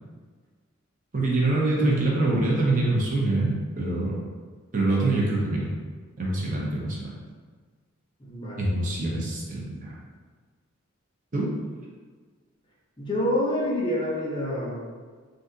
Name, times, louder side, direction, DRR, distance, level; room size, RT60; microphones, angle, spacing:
voice 1, 1.1-4.2 4.7-5.7 6.2-7.1 8.6-9.9 11.3-11.5, right 2 dB, 40° right, -4 dB, 0.6 m, -25 dB
voice 2, 8.2-8.7 13.0-14.9, left 1 dB, 20° left, -5 dB, 0.6 m, -27 dB
3.5 x 2.7 x 2.7 m, 1.5 s
head